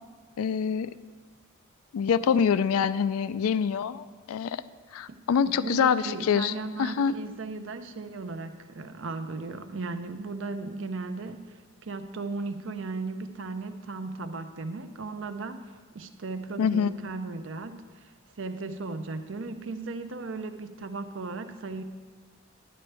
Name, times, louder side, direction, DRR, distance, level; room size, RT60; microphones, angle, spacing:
voice 1, 0.4-0.9 1.9-4.6 4.9-6.5 6.8-7.2 16.6-16.9, left 7 dB, 90° left, 14 dB, 0.4 m, -25 dB
voice 2, 5.6-11.4 11.8-15.6 15.9-17.8 18.4-21.8, right 3 dB, 60° right, 9 dB, 0.6 m, -36 dB
11.0 x 10.0 x 3.4 m, 1.5 s
head